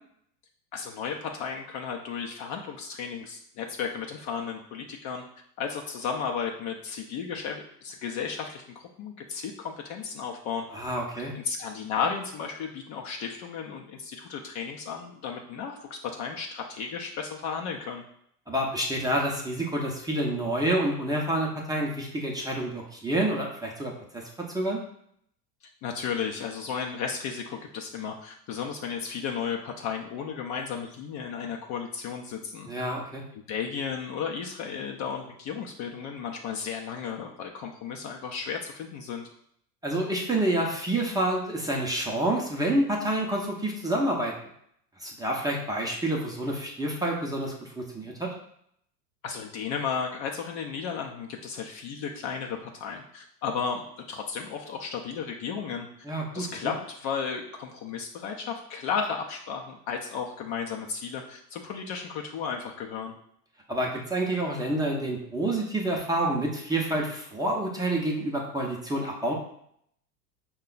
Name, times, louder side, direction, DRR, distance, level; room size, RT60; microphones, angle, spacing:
voice 1, 0.7-5.2 5.6-10.7 11.3-18.0 25.8-32.7 33.5-39.3 49.2-55.9 56.3-63.1, left 6 dB, 35° left, 1 dB, 0.6 m, -34 dB
voice 2, 10.7-11.3 18.5-24.8 32.7-33.2 39.8-44.3 45.0-48.3 56.0-56.7 63.7-69.3, right 1 dB, 10° right, -1 dB, 0.7 m, -28 dB
5.4 x 2.3 x 3.9 m, 0.70 s
hypercardioid pair, 90°, 49 cm